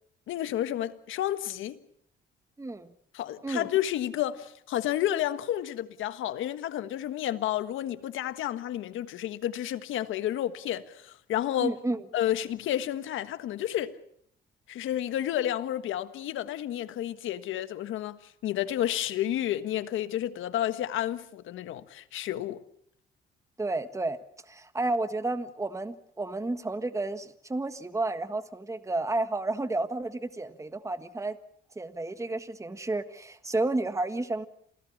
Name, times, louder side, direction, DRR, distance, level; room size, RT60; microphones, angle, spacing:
voice 1, 0.3-1.8 3.1-11.8 12.1-13.9 14.7-22.6, left 12 dB, 85° left, 1.5 m, -31 dB
voice 2, 2.6-2.9 3.4-3.7 11.6-12.0 23.6-24.2 24.5-31.4 31.7-34.5, right 2 dB, 15° right, 1.5 m, -31 dB
27.5 x 17.5 x 7.3 m
cardioid pair, 90°, 20 cm